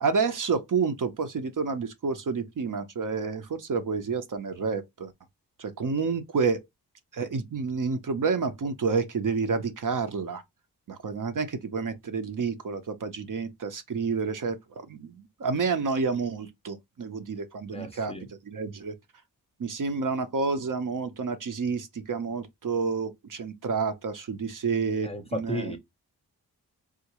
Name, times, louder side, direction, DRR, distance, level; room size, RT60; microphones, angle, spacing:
voice 1, 0.0-5.1 5.6-6.6 7.1-10.4 10.9-18.1 18.5-18.9 19.6-25.8, right 5 dB, 55° right, 0.7 m, -29 dB
voice 2, 17.7-18.2 25.0-25.8, equal, 15° left, 0.6 m, -34 dB
3.6 x 2.5 x 2.9 m
wide cardioid pair, 130°, 38 cm